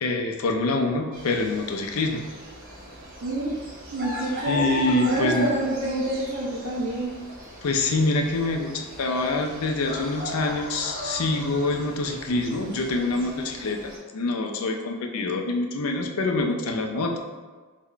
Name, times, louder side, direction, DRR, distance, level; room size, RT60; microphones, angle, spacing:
voice 1, 0.0-2.2 4.5-5.5 7.6-17.2, left 2 dB, 70° left, 3 dB, 0.4 m, -25 dB
sound 1, 1.1-14.0, equal, 40° right, 0.8 m, -37 dB
voice 2, 3.2-3.5 3.9-7.1, right 1 dB, 90° right, -5 dB, 0.6 m, -27 dB
3.3 x 2.1 x 3.7 m, 1.4 s
head